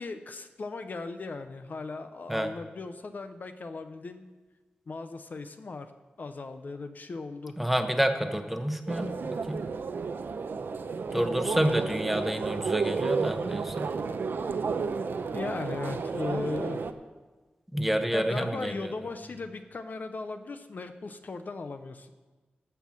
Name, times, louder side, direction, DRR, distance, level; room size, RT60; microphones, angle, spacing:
voice 1, 0.0-4.2 4.9-5.9 6.2-7.6 11.6-12.2 15.3-16.8 18.1-22.1, left 3 dB, 55° left, 9 dB, 0.6 m, -37 dB
voice 2, 7.6-9.1 9.5-9.6 11.1-13.9 17.7-18.9, right 1 dB, 5° right, 7 dB, 0.9 m, -28 dB
sound 1, 8.9-16.9, right 5 dB, 75° right, 0.6 m, -32 dB
13.5 x 5.7 x 7.4 m, 1.3 s
wide cardioid pair, 100°, 4 cm